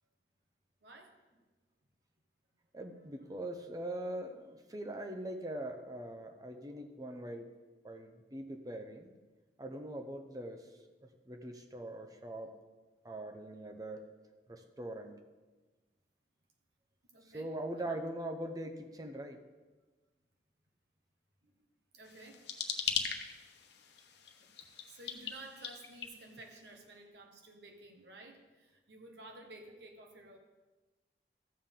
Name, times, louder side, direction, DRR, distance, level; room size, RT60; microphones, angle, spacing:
voice 1, 0.8-1.1 17.1-17.5 17.8-18.0 21.4-21.5 21.9-22.4 24.4-24.5 24.9-30.4, right 2 dB, 75° right, 2 dB, 1.3 m, -53 dB
voice 2, 2.7-7.5 7.8-9.2 9.6-10.7 11.0-12.5 13.0-14.1 14.5-15.2 17.2-19.4, right 1 dB, 20° right, 6 dB, 0.6 m, -42 dB
sound 1, 22.0-26.7, left 7 dB, 80° left, 1.0 m, -40 dB
14.0 x 7.2 x 3.7 m, 1.2 s
head